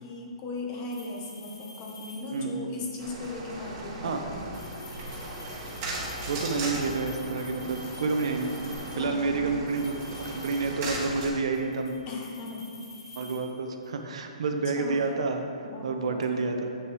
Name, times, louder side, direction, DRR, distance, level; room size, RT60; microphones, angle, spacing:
voice 1, 0.0-4.4 8.9-9.6 12.1-12.7 14.8-15.1 15.6-16.5, left 3 dB, 20° left, 0 dB, 0.9 m, -38 dB
sound 1, 0.9-2.7 4.4-9.1 9.7-11.2 11.5-14.0, left 3 dB, 40° left, 1.8 m, -49 dB
voice 2, 2.3-2.7 4.0-4.2 6.3-8.6 9.0-12.0 13.1-15.4 15.8-16.7, right 4 dB, 55° right, 4 dB, 0.8 m, -29 dB
sound 2, 3.0-11.3, right 2 dB, 25° right, 1.5 m, -37 dB
8.4 x 6.1 x 4.7 m, 2.5 s
hypercardioid pair, 170°, 4 cm